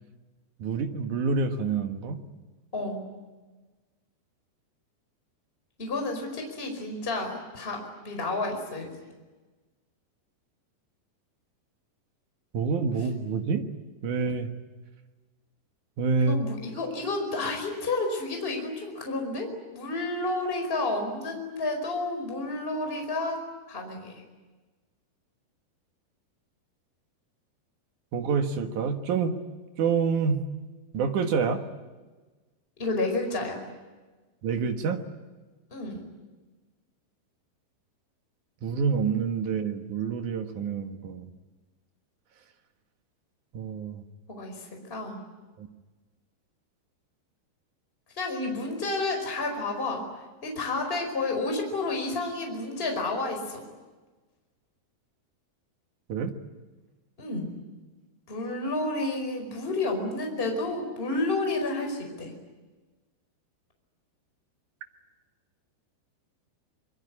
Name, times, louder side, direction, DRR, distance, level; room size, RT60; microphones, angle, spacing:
voice 1, 0.6-2.2 12.5-13.7 14.0-14.5 16.0-16.4 28.1-29.4 29.8-30.4 30.9-31.6 34.4-35.0 38.6-41.3 43.5-44.0 45.6-45.7 56.1-56.4, right 5 dB, 60° right, 6 dB, 2.4 m, -27 dB
voice 2, 2.7-3.0 5.8-8.9 16.2-24.2 32.8-33.6 35.7-36.0 44.3-45.2 48.2-53.6 57.2-57.5 58.3-62.3, left 2 dB, 15° left, 3 dB, 4.8 m, -31 dB
25.5 x 23.0 x 9.9 m, 1.3 s
omnidirectional pair, 5.0 m